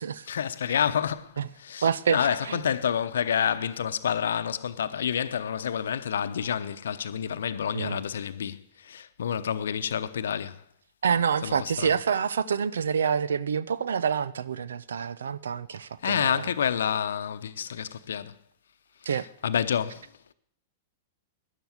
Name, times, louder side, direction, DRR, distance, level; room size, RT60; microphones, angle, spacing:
voice 1, 0.3-10.6 11.4-11.9 16.0-18.4 19.0-20.1, left 8 dB, 75° left, 0.8 m, -29 dB
voice 2, 1.8-2.6 7.7-8.0 11.0-16.4 19.1-19.3, right 7 dB, 75° right, 0.6 m, -27 dB
12.5 x 10.0 x 8.0 m
hypercardioid pair, 105°, 0 cm